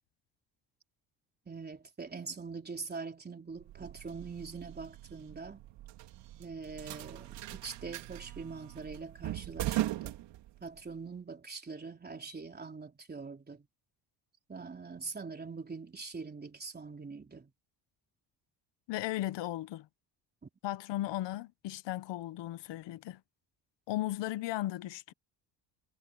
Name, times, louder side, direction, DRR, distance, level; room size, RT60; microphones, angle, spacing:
voice 1, 1.5-5.6 6.4-10.2 10.6-13.7 14.5-17.5 20.4-20.5, right 4 dB, 25° right, 3.7 m, -43 dB
sound 1, 3.6-10.9, right 14 dB, 80° right, 2.8 m, -40 dB
voice 2, 18.9-19.9 20.6-23.2 23.9-25.1, left 15 dB, 85° left, 1.2 m, -36 dB
cardioid pair, 115°, 42 cm